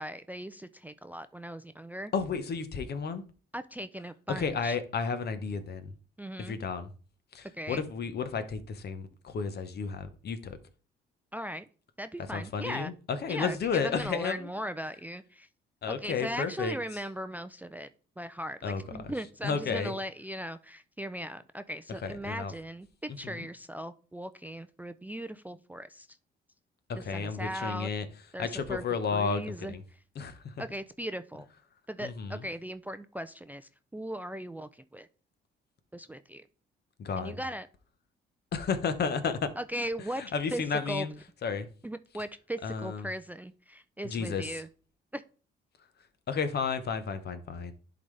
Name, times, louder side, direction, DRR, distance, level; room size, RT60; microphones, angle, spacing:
voice 1, 0.0-2.1 3.5-4.8 6.2-6.6 7.5-7.8 11.3-11.7 12.0-12.9 13.3-15.5 15.9-17.9 18.2-26.1 27.1-27.9 28.3-28.8 29.1-30.0 30.6-31.5 31.9-35.1 35.9-36.5 37.2-37.7 39.6-40.2 40.5-41.1 41.8-44.7 45.1-45.2, equal, 10° right, 0.4 m, -38 dB
voice 2, 2.1-3.2 4.3-5.9 6.4-6.9 7.3-10.6 12.3-14.5 15.8-16.8 18.6-19.1 19.4-20.0 21.9-22.5 23.2-23.5 26.9-28.1 28.4-29.8 30.2-30.5 32.0-32.4 37.0-37.4 38.5-39.5 40.2-41.1 41.4-41.7 42.6-43.1 44.0-44.6 46.3-47.7, left 5 dB, 55° left, 1.0 m, -32 dB
10.5 x 4.0 x 3.3 m
cardioid pair, 90°, 20 cm